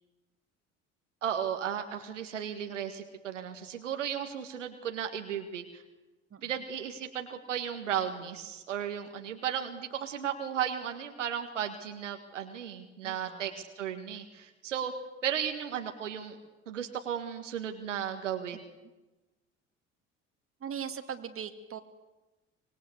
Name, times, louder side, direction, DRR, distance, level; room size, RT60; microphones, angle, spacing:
voice 1, 1.2-5.8 6.4-14.9 15.2-16.4 16.7-18.6, right 9 dB, 80° right, 6 dB, 1.9 m, -35 dB
voice 2, 13.0-13.5 20.6-21.8, right 8 dB, 35° right, 7 dB, 2.6 m, -40 dB
25.5 x 22.5 x 8.3 m, 1.1 s
figure-of-eight pair, 60°, 36 cm